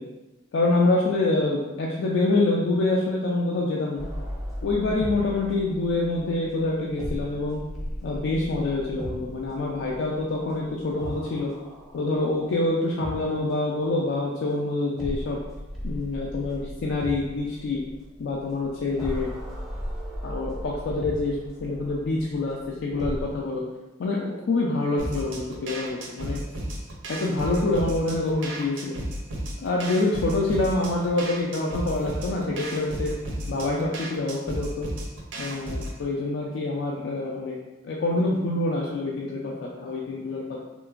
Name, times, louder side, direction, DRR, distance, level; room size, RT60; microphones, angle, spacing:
voice 1, 0.5-4.1 4.6-7.6 8.0-11.5 11.9-15.4 15.8-17.8 18.2-19.3 20.2-23.6 24.0-26.4 27.1-29.0 29.6-33.1 33.5-34.9 35.3-37.6 37.8-40.6, left 2 dB, 75° left, -3 dB, 0.3 m, -26 dB
sound 1, 4.0-13.8 15.0-23.4, equal, ahead, 0.4 m, -37 dB
sound 2, 25.0-36.0, right 1 dB, 75° right, 0.5 m, -34 dB
2.9 x 2.5 x 2.4 m, 1.1 s
head